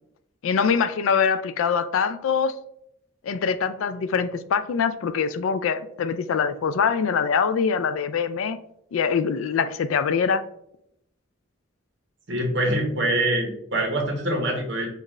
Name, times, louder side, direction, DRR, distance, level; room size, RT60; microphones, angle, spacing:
voice 1, 0.4-2.6 3.2-8.6 8.9-10.4, left 6 dB, 80° left, 0.4 m, -23 dB
voice 2, 12.3-14.9, right 1 dB, 60° right, 1.3 m, -24 dB
5.6 x 2.5 x 3.1 m
head